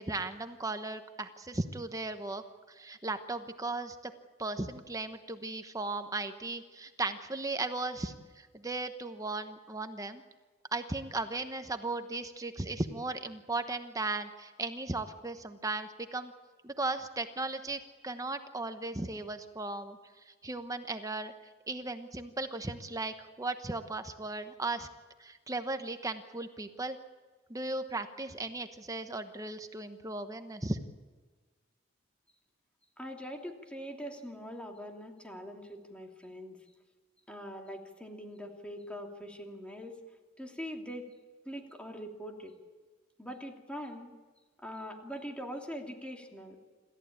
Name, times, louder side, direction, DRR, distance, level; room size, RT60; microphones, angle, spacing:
voice 1, 0.0-2.4 2.7-4.1 4.4-10.2 10.7-16.3 16.6-20.0 20.3-21.3 21.7-24.9 25.2-27.0 27.5-30.8, right 2 dB, 20° right, 8 dB, 1.1 m, -36 dB
voice 2, 33.0-36.6 37.3-40.0 40.4-41.1 41.4-42.6 43.2-44.1 44.6-46.6, equal, 5° left, 2 dB, 2.8 m, -43 dB
27.5 x 14.0 x 8.7 m, 1.4 s
head